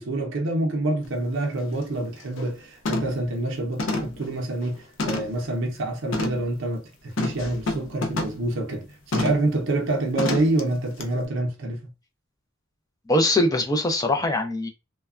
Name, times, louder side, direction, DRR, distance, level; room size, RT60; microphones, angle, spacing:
voice 1, 0.0-11.8, right 2 dB, 65° right, 0.6 m, -27 dB
sound 1, 1.0-1.1 1.6-1.8 2.2-2.5 2.9-3.3 3.8-5.5 6.1-6.5 7.2-8.4 9.1-9.5 10.2-10.6 11.0-11.1, left 2 dB, 65° left, 0.6 m, -29 dB
voice 2, 13.1-14.7, left 1 dB, 20° left, 0.5 m, -22 dB
3.2 x 2.2 x 2.3 m
head